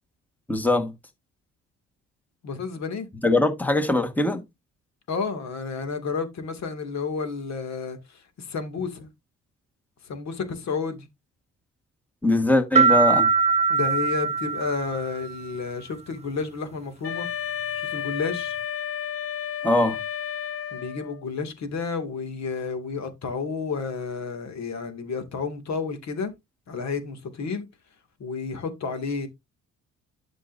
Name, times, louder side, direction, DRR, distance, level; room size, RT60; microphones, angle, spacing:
voice 1, 0.5-0.9 3.2-4.4 12.2-13.3 19.6-20.0, left 2 dB, 5° left, 1.4 m, -21 dB
voice 2, 2.4-3.1 5.1-9.1 10.0-11.1 13.7-17.3 17.7-18.6 20.7-26.3 26.7-27.7 28.2-29.3, left 5 dB, 65° left, 2.2 m, -31 dB
sound 1, 12.8-15.4, right 5 dB, 20° right, 0.4 m, -22 dB
Wind instrument woodwind instrument, 17.0-21.2, left 9 dB, 45° left, 1.0 m, -32 dB
11.5 x 5.4 x 2.6 m
cardioid pair, 90°, 30 cm